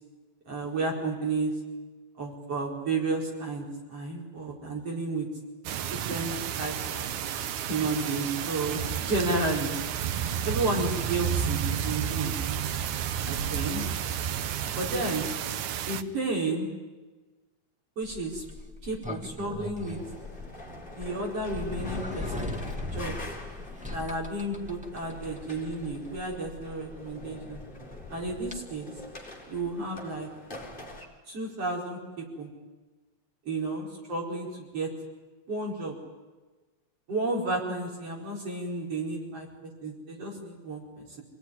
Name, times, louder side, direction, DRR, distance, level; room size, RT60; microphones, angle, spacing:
voice 1, 0.5-1.5 2.2-5.3 5.9-7.0 7.7-9.7 10.5-12.3 13.2-13.8 14.8-15.3 15.9-16.7 18.0-18.4 18.8-20.0 21.0-23.2 23.9-27.6 28.1-28.9 29.5-30.3 31.3-32.5 33.5-34.9 35.5-36.0 37.1-41.2, right 2 dB, 50° right, -1 dB, 5.5 m, -32 dB
sound 1, 5.7-16.0, right 9 dB, 80° right, 2.4 m, -31 dB
Sliding door, 18.0-28.6, left 2 dB, 5° right, 1.0 m, -39 dB
sound 2, 19.8-31.1, left 1 dB, 15° left, 4.4 m, -45 dB
28.0 x 19.0 x 9.9 m, 1.2 s
omnidirectional pair, 3.4 m